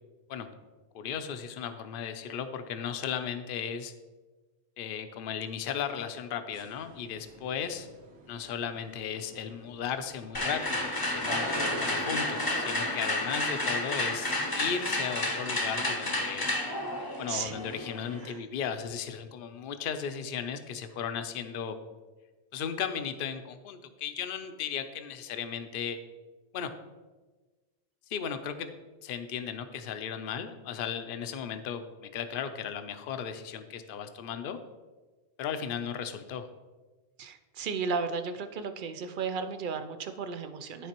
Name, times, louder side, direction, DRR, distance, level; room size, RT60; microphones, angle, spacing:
voice 1, 0.9-3.9 4.8-7.9 8.3-11.5 11.8-16.4 17.2-21.8 22.5-26.0 26.5-26.7 28.1-34.6 35.4-36.5, left 7 dB, 60° left, 9 dB, 0.7 m, -36 dB
sound 1, 6.5-12.0, right 3 dB, 85° right, 1.2 m, -47 dB
sound 2, 10.3-18.3, left 1 dB, 25° left, 0.7 m, -31 dB
voice 2, 17.3-17.6 18.2-18.4 37.2-40.9, right 5 dB, 60° right, 9 dB, 0.6 m, -34 dB
12.5 x 4.2 x 2.9 m, 1.3 s
omnidirectional pair, 1.1 m